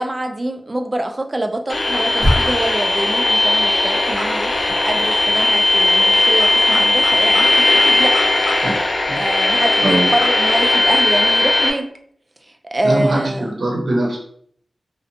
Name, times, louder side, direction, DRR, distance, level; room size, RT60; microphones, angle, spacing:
voice 1, 0.0-7.5 7.8-8.1 8.4-8.6 9.1-11.9 12.7-13.7, right 1 dB, 30° right, 5 dB, 0.3 m, -25 dB
sound 1, 1.7-11.7, left 2 dB, 60° left, 0.4 m, -17 dB
sound 2, 2.0-8.8 9.1-9.2 9.5-9.6, equal, 30° left, 0.9 m, -28 dB
voice 2, 9.1-10.1 12.8-14.2, right 1 dB, 75° right, -3 dB, 0.8 m, -22 dB
2.5 x 2.1 x 2.7 m, 0.64 s
wide cardioid pair, 65°, 0 cm